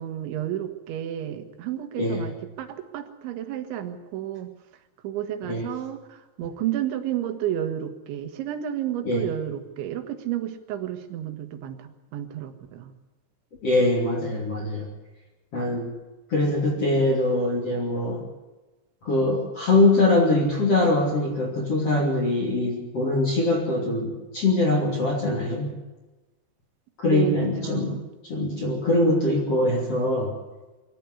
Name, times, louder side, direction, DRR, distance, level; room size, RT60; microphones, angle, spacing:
voice 1, 0.0-4.5 5.0-12.9 27.0-28.1, right 11 dB, 80° right, 7 dB, 3.9 m, -31 dB
voice 2, 2.0-2.3 5.4-5.7 9.0-9.2 13.6-14.9 15.5-15.9 16.3-18.2 19.0-25.7 27.0-27.9 28.2-30.3, left 2 dB, 35° left, -1 dB, 3.5 m, -23 dB
24.5 x 13.0 x 9.6 m, 1.1 s
omnidirectional pair, 5.2 m